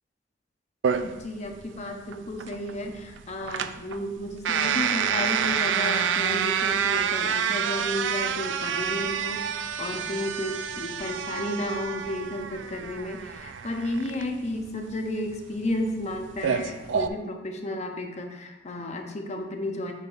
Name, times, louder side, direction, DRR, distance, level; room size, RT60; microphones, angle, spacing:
sound 1, 0.8-17.1, right 7 dB, 80° right, 0.4 m, -28 dB
voice 1, 1.0-19.9, left 1 dB, 40° left, 3 dB, 0.7 m, -32 dB
8.5 x 6.6 x 2.6 m, 1.1 s
head